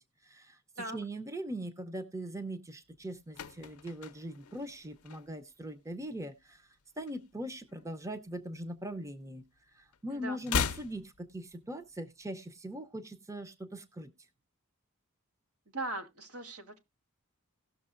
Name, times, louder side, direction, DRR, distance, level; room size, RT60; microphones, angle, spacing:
voice 1, 0.2-6.7 7.0-9.4 9.7-14.1, right 1 dB, 15° right, 8 dB, 0.6 m, -41 dB
sound 1, 3.0-5.6 5.9-6.2 6.5-8.0 8.2-9.6 9.9-12.0 12.2-12.3, left 6 dB, 80° left, 0.5 m, -38 dB
voice 2, 15.7-16.8, right 2 dB, 85° right, 5 dB, 1.6 m, -39 dB
17.5 x 6.3 x 2.5 m, 0.23 s
head